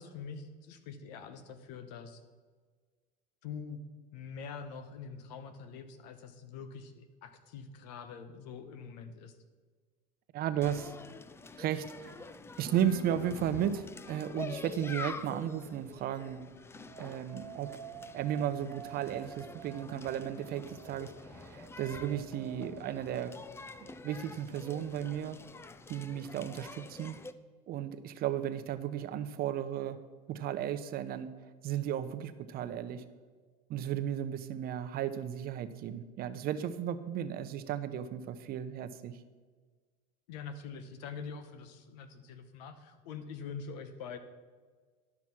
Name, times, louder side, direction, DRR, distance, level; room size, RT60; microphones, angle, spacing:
voice 1, 0.0-2.2 3.4-3.8 4.1-9.4 40.3-44.2, left 6 dB, 80° left, 10 dB, 1.1 m, -45 dB
voice 2, 10.3-10.9 11.6-12.2 12.6-16.4 17.0-17.8 18.1-23.4 23.8-25.4 25.9-27.2 27.7-30.0 30.3-31.3 31.6-33.0 33.7-39.2, right 10 dB, 45° right, 10 dB, 0.7 m, -34 dB
sound 1, 10.6-27.3, left 3 dB, 10° left, 0.4 m, -47 dB
Piano, 12.7-23.0, left 10 dB, 60° left, 2.2 m, -57 dB
sound 2, 16.9-23.4, right 11 dB, 90° right, 0.6 m, -49 dB
11.0 x 6.0 x 6.0 m, 1.5 s
supercardioid pair, 115°, 21 cm